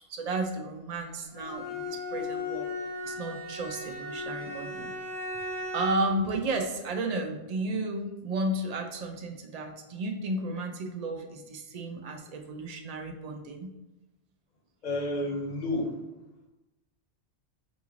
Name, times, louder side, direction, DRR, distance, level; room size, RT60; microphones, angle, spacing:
voice 1, 0.1-2.7 3.0-4.9 5.7-13.7, right 2 dB, 75° right, 4 dB, 0.3 m, -33 dB
Bowed string instrument, 1.3-6.2, left 2 dB, 15° right, 1.1 m, -36 dB
voice 2, 14.8-15.9, left 1 dB, 45° left, 1 dB, 0.7 m, -30 dB
5.1 x 2.4 x 3.1 m, 1.0 s
omnidirectional pair, 1.2 m